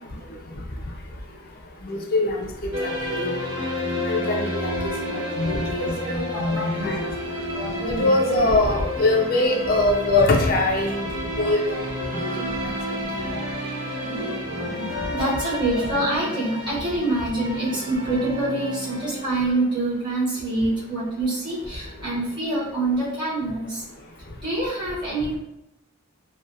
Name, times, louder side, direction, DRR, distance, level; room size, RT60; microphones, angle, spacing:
voice 1, 1.8-3.3 4.1-4.7 5.1-7.0 7.9-11.1 11.4-12.3 13.1-13.4, left 2 dB, 45° left, 1 dB, 0.4 m, -23 dB
sound 1, 2.7-19.6, equal, 65° right, 0.8 m, -31 dB
voice 2, 5.8-7.0 7.4-8.5 12.3-12.5 12.9-13.4 13.8-23.8 24.4-25.4, right 2 dB, 20° right, -8 dB, 0.9 m, -27 dB
2.3 x 2.2 x 2.6 m, 0.86 s
head